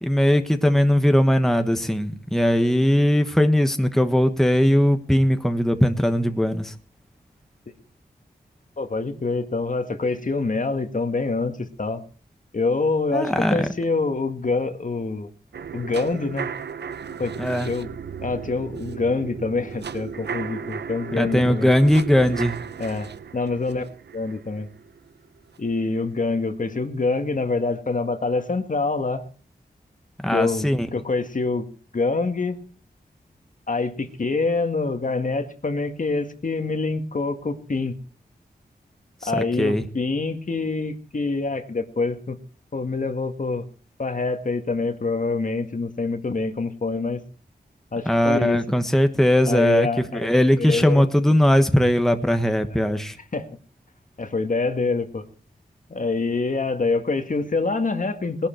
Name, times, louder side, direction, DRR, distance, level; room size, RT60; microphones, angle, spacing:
voice 1, 0.0-6.7 13.1-13.7 17.4-17.7 21.1-22.6 30.2-30.9 39.2-39.9 48.0-53.2, equal, ahead, 7 dB, 1.3 m, -19 dB
voice 2, 8.8-12.0 12.5-15.3 15.7-16.5 17.2-17.3 17.7-17.9 18.2-21.7 22.8-23.8 24.1-24.7 25.6-29.2 30.3-31.7 31.9-32.6 33.7-38.0 39.2-42.4 42.7-43.7 44.0-47.2 47.9-48.6 49.5-50.3 50.6-51.1 52.7-52.9 53.3-53.5 54.2-55.3 55.9-58.5, left 3 dB, 50° left, 7 dB, 1.8 m, -25 dB
sound 1, 15.5-25.6 26.0-26.1, right 6 dB, 80° right, 0.7 m, -35 dB
19.5 x 12.0 x 4.5 m, 0.41 s
wide cardioid pair, 75°, 17 cm